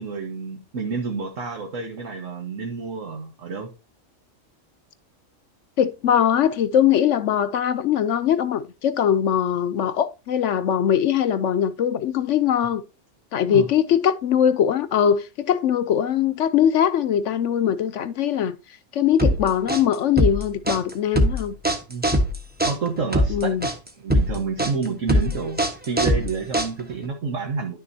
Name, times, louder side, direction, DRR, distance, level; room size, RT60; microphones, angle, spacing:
voice 1, 0.0-3.7 13.5-13.7 21.9-22.1 22.6-23.7 24.0-27.8, right 4 dB, 70° right, 1.6 m, -29 dB
voice 2, 5.8-12.8 13.3-18.6 18.9-21.5 23.3-23.7, left 9 dB, 70° left, 0.9 m, -21 dB
sound 1, 19.2-27.1, equal, 10° right, 1.1 m, -22 dB
11.0 x 6.5 x 2.7 m
omnidirectional pair, 1.4 m